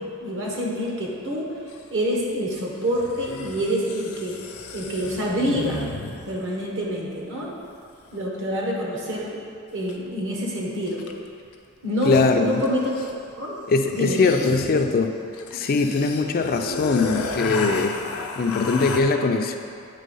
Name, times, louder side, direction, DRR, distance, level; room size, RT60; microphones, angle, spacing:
voice 1, 0.0-1.6 1.9-4.3 4.7-5.9 6.2-7.5 8.1-9.4 9.7-11.1 11.8-12.9 13.4-13.5 13.9-14.4, equal, 60° right, -3 dB, 1.3 m, -27 dB
sound 1, 1.7-1.8 2.9-6.5 9.9-10.0 10.9-11.3 11.5-11.6 11.8-13.3 13.8-19.0, left 3 dB, 85° left, 0.6 m, -34 dB
voice 2, 12.1-12.6 13.7-15.1 15.5-18.0 18.4-19.6, left 3 dB, 45° left, 5 dB, 0.4 m, -21 dB
8.4 x 3.6 x 5.4 m, 2.5 s
head